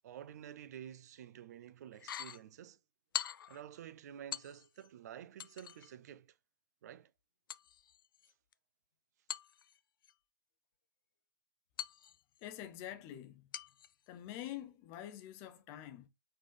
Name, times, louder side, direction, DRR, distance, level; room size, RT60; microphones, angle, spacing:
voice 1, 0.0-2.8 3.5-6.4 6.8-7.1, right 10 dB, 50° right, 0.4 m, -50 dB
sound 1, 1.9-2.4 3.1-3.6 4.3-4.9 5.4-5.9 7.5-8.5 9.3-10.1 11.8-12.5 13.5-13.9 14.4-14.5, left 10 dB, 80° left, 0.4 m, -44 dB
voice 2, 12.4-13.5 14.1-16.1, left 12 dB, 25° left, 0.6 m, -46 dB
4.3 x 3.2 x 3.6 m
hypercardioid pair, 165°, 11 cm